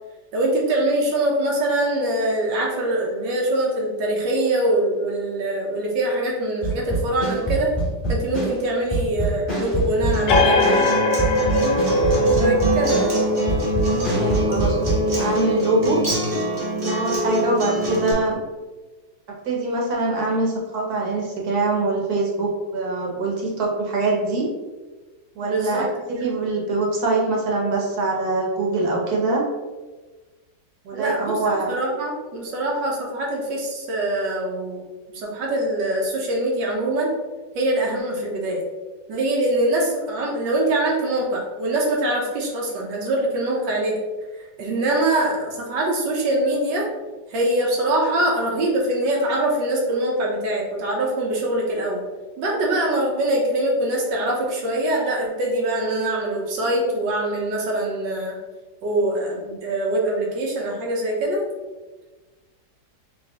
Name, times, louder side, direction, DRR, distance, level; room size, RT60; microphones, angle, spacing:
voice 1, 0.3-7.7 8.1-10.8 12.3-13.1 25.4-25.9 26.2-26.3 30.9-31.3 31.7-34.8 35.1-37.1 37.5-38.6 39.1-43.9 44.6-46.9 47.3-52.0 52.4-58.3 58.8-61.4, right 1 dB, 90° right, -2 dB, 1.6 m, -23 dB
sound 1, 6.6-15.5, right 2 dB, 10° left, 1.1 m, -25 dB
Acoustic guitar, 10.1-18.1, equal, 40° right, 1.0 m, -25 dB
sound 2, 10.3-17.5, equal, 75° left, 0.7 m, -23 dB
voice 2, 14.1-16.0 16.8-18.4 19.5-24.5 25.4-29.4 30.8-31.7, right 2 dB, 65° right, -1 dB, 1.3 m, -23 dB
4.3 x 3.1 x 2.9 m, 1.2 s
omnidirectional pair, 1.9 m